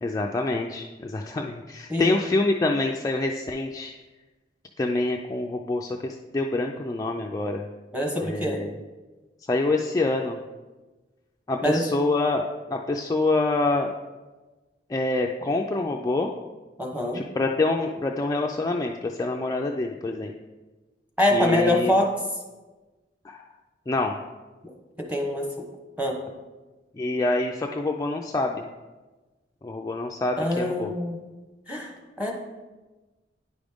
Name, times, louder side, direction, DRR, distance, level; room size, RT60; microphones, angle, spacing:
voice 1, 0.0-4.0 4.8-7.7 8.2-8.8 9.5-10.4 11.5-12.4 12.7-13.9 14.9-16.3 17.1-20.3 21.3-21.9 23.2-23.5 23.9-24.2 27.0-28.7 29.6-30.9, left 2 dB, 20° left, 1 dB, 0.3 m, -26 dB
voice 2, 7.9-8.6 11.6-11.8 16.8-17.2 21.2-22.1 25.1-25.5 26.0-26.2 30.4-31.2 31.7-31.9 32.2-32.3, left 1 dB, 10° right, 0 dB, 1.0 m, -24 dB
9.6 x 5.1 x 3.5 m, 1.2 s
head